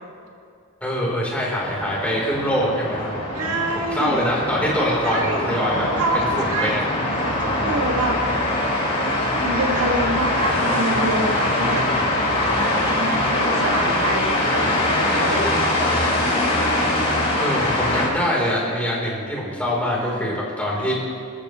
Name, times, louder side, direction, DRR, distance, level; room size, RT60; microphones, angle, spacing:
voice 1, 0.8-5.8 6.1-6.8 17.4-20.9, equal, 5° left, -5 dB, 3.8 m, -24 dB
sound 1, 1.7-18.1, left 1 dB, 25° left, 4.5 m, -22 dB
voice 2, 3.3-4.3 5.0-5.4 6.0-6.8 7.1-8.2 9.0-11.8 12.6-15.5 17.8-18.5 20.0-20.4 20.7-20.9, right 1 dB, 90° right, 0 dB, 2.1 m, -27 dB
27.0 x 13.5 x 3.2 m, 2.4 s
head